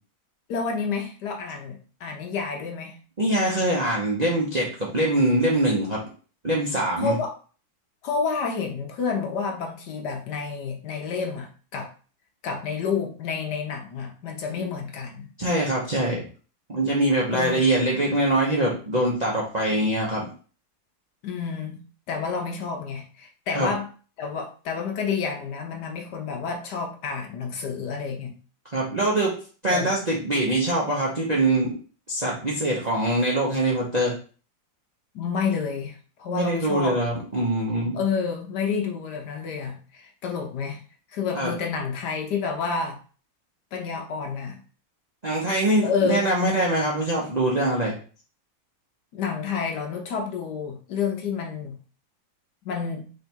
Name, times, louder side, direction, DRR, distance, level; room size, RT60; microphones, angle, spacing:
voice 1, 0.5-3.0 7.0-7.3 8.0-11.9 12.4-15.3 17.3-17.7 21.2-21.8 22.1-23.9 24.2-28.4 29.7-29.9 35.1-37.0 37.9-40.8 41.1-43.0 43.7-44.6 45.8-46.2 49.1-51.8 52.6-53.1, left 5 dB, 70° left, 3 dB, 1.2 m, -29 dB
voice 2, 3.2-6.0 6.4-7.1 15.4-16.2 16.7-20.3 23.5-23.7 28.7-29.3 29.6-31.8 32.1-34.1 36.3-38.0 41.3-41.5 45.2-48.0, right 1 dB, 40° right, -4 dB, 0.6 m, -23 dB
3.5 x 3.4 x 4.4 m, 0.39 s
omnidirectional pair, 2.1 m